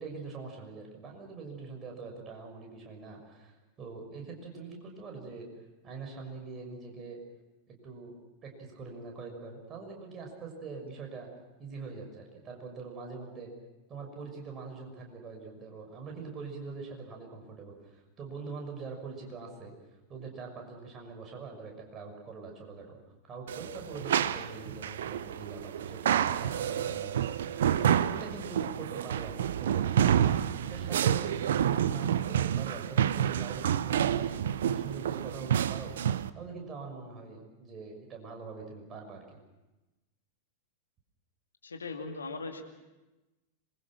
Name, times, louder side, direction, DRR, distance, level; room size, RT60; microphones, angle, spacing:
voice 1, 0.0-5.5 5.8-7.2 7.7-8.1 8.4-11.3 11.6-13.5 13.9-19.7 20.1-23.0 23.3-29.8 30.6-34.3 34.7-35.9 36.3-39.4, right 4 dB, 25° right, 2 dB, 6.1 m, -43 dB
sound 1, 23.5-36.3, right 9 dB, 60° right, 0.7 m, -29 dB
voice 2, 41.6-42.6, left 3 dB, 75° left, 4 dB, 2.3 m, -39 dB
26.5 x 22.0 x 6.2 m, 1.1 s
figure-of-eight pair, 90°, 0 cm